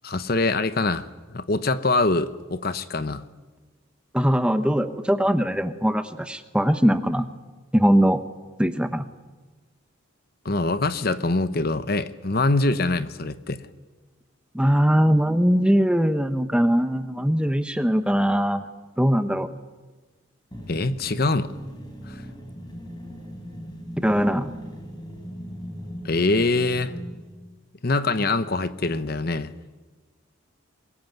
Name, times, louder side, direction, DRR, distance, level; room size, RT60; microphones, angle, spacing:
voice 1, 0.0-3.2 10.4-13.6 20.7-21.5 22.1-22.2 26.0-26.9 27.8-29.5, left 2 dB, 45° left, 13 dB, 0.9 m, -24 dB
voice 2, 4.1-7.3 7.7-8.2 8.6-9.1 14.5-18.6 19.0-19.5 24.0-24.5, equal, 5° right, 10 dB, 0.9 m, -21 dB
sound 1, 20.5-27.3, equal, 20° left, 4.7 m, -39 dB
23.0 x 21.0 x 9.3 m, 1.3 s
head